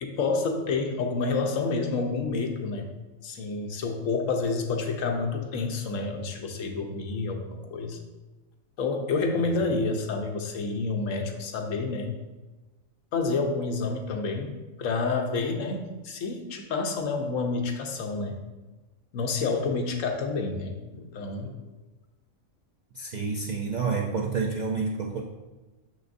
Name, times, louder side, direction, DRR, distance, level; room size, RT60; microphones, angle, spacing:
voice 1, 0.0-2.9 3.2-8.0 8.8-12.1 13.1-18.4 19.1-21.6, left 4 dB, 75° left, 4 dB, 1.1 m, -29 dB
voice 2, 23.0-25.2, right 4 dB, 75° right, 1 dB, 0.4 m, -29 dB
6.4 x 6.1 x 2.6 m, 1.2 s
omnidirectional pair, 1.4 m